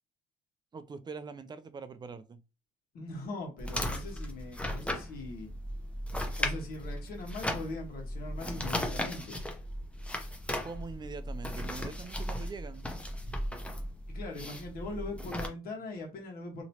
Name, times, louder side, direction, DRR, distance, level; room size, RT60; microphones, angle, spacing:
voice 1, 0.7-2.4 10.6-12.9, right 4 dB, 25° right, 0.4 m, -43 dB
voice 2, 2.9-5.5 6.4-9.4 14.1-16.6, left 2 dB, 60° left, 1.5 m, -41 dB
sound 1, 3.6-15.5, left 1 dB, 5° left, 0.8 m, -36 dB
3.0 x 2.9 x 2.8 m
cardioid pair, 110°, 17 cm